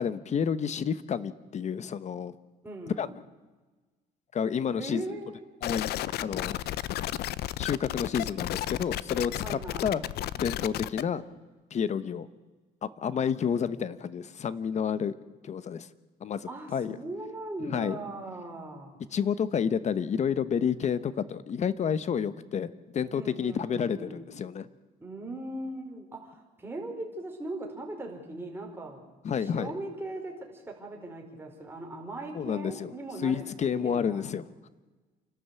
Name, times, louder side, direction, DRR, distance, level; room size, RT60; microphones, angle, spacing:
voice 1, 0.0-2.3 3.0-3.1 4.3-5.0 5.6-5.9 6.2-6.6 7.6-10.0 10.3-11.2 11.7-12.3 12.8-15.1 15.4-15.9 16.2-17.0 17.7-18.0 19.1-24.7 29.2-29.7 32.3-32.9 33.2-34.7, left 7 dB, 40° left, 15 dB, 1.0 m, -30 dB
voice 2, 2.6-3.1 4.8-5.5 9.4-10.0 16.5-19.0 23.1-24.3 25.0-29.0 29.4-34.3, right 2 dB, 15° right, 1 dB, 4.8 m, -39 dB
sound 1, 5.6-11.0, left 14 dB, 70° left, 0.7 m, -33 dB
28.0 x 12.5 x 8.3 m, 1.3 s
cardioid pair, 110°, 17 cm